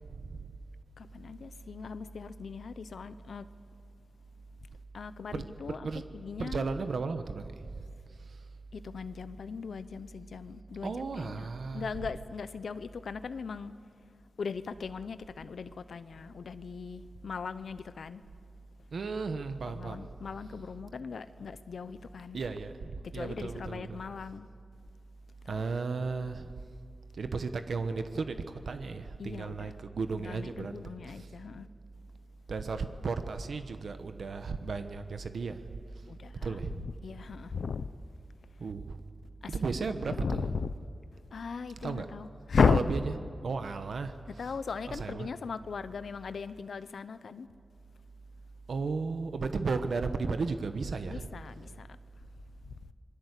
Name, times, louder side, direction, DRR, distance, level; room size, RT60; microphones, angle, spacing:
voice 1, 0.1-0.5 5.3-5.5 5.8-6.0 6.4-7.8 8.2-8.4 10.8-11.9 18.9-20.1 22.3-24.0 25.5-26.5 27.1-31.3 32.5-36.0 36.4-36.9 38.6-39.0 39.5-40.5 41.8-42.1 42.6-43.0 43.4-44.1 44.9-45.3 48.7-51.3, right 4 dB, 75° right, 1.2 m, -35 dB
voice 2, 1.0-3.5 4.9-5.9 6.1-6.6 8.7-11.5 11.7-13.8 14.4-18.2 19.6-22.4 23.0-24.5 25.4-25.6 29.2-29.7 30.1-31.7 36.1-36.6 36.8-37.9 39.4-39.5 40.1-40.7 41.3-42.9 44.4-47.5 51.1-51.9, left 5 dB, 85° left, 0.8 m, -36 dB
26.5 x 21.0 x 8.3 m
wide cardioid pair, 145°, 0 cm